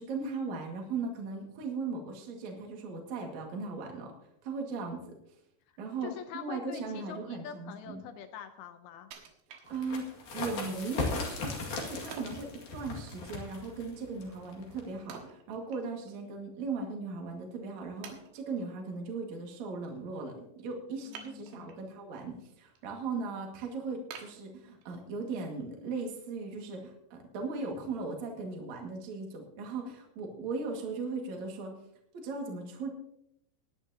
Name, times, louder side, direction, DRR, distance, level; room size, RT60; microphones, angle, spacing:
voice 1, 0.0-4.1 4.4-5.2 5.8-8.0 9.7-10.1 10.3-31.7 32.1-32.9, right 4 dB, 50° right, 1 dB, 2.9 m, -38 dB
voice 2, 6.0-9.1 20.9-21.8, left 8 dB, 80° left, 8 dB, 2.5 m, -45 dB
Wood, 9.1-10.2 10.7-10.8 12.1-12.5 15.1-16.2 16.5-16.6 17.3-17.4 18.0-18.7 21.1-21.9 22.3-22.8 23.2-23.3 24.1-25.1 25.6-25.7, right 6 dB, 90° right, 3.5 m, -49 dB
sound 1, 9.7-15.1, left 3 dB, 55° left, 3.4 m, -38 dB
20.5 x 10.5 x 2.8 m, 0.75 s
omnidirectional pair, 4.7 m